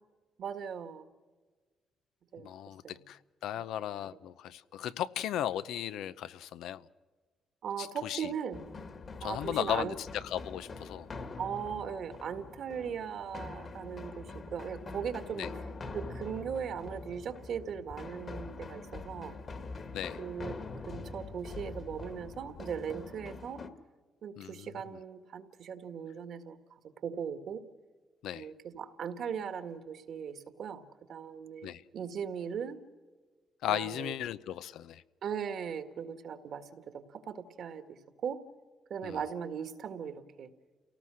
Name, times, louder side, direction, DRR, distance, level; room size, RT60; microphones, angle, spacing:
voice 1, 0.4-1.1 2.3-2.5 2.8-3.0 3.5-3.6 7.6-8.6 9.2-10.0 11.4-15.5 15.9-19.4 20.2-20.5 20.9-23.6 24.2-26.6 27.0-27.6 28.3-30.8 31.1-32.8 33.7-34.1 35.2-38.0 38.2-38.4 38.9-40.5, right 7 dB, 65° right, 9 dB, 1.8 m, -38 dB
voice 2, 2.4-6.8 7.8-8.3 9.2-11.1 15.4-15.5 19.9-20.2 24.4-25.0 28.2-28.5 31.6-31.8 33.6-35.0 39.0-39.2, left 11 dB, 85° left, 15 dB, 0.7 m, -36 dB
sound 1, 8.5-23.7, left 3 dB, 45° left, 2.0 m, -44 dB
29.0 x 18.0 x 6.4 m, 1.4 s
cardioid pair, 90°, 0 cm